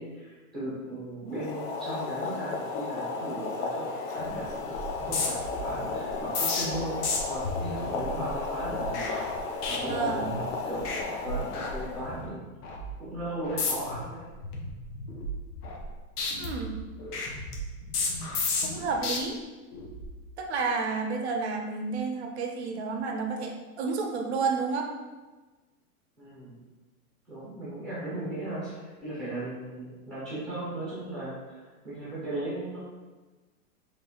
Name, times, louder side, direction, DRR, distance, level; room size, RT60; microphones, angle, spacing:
voice 1, 0.0-12.4 13.0-14.3 26.2-26.6 27.3-32.8, right 1 dB, ahead, -9 dB, 0.7 m, -37 dB
Boiling, 1.3-12.3, left 4 dB, 60° left, 0.7 m, -34 dB
sound 1, 4.2-4.5 4.7-10.5 10.8-11.0 11.3-12.2 12.6-12.9 13.4-14.0 14.4-15.9 16.2-19.2 19.7-20.0, left 3 dB, 85° left, 1.0 m, -33 dB
voice 2, 9.8-10.3 16.4-16.8 18.6-19.4 20.4-24.9, right 4 dB, 50° right, 3 dB, 0.5 m, -30 dB
3.9 x 3.3 x 3.0 m, 1.2 s
supercardioid pair, 180°, 45 cm